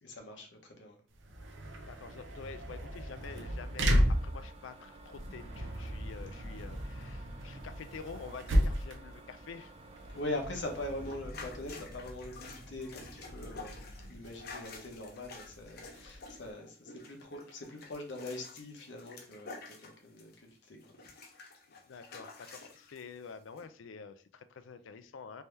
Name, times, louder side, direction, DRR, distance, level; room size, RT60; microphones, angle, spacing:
voice 1, 0.0-1.0 10.1-21.2, left 1 dB, 70° left, 2 dB, 0.9 m, -42 dB
sound 1, 1.1-16.5, equal, 80° right, 0.6 m, -35 dB
voice 2, 1.8-9.7 21.7-25.4, left 5 dB, 85° left, 12 dB, 0.4 m, -48 dB
sound 2, 3.2-11.2, right 3 dB, 30° right, 0.5 m, -55 dB
sound 3, 10.5-20.5 20.8-23.0 23.6-23.7, left 3 dB, 55° left, 0.7 m, -50 dB
3.4 x 2.7 x 3.3 m, 0.41 s
head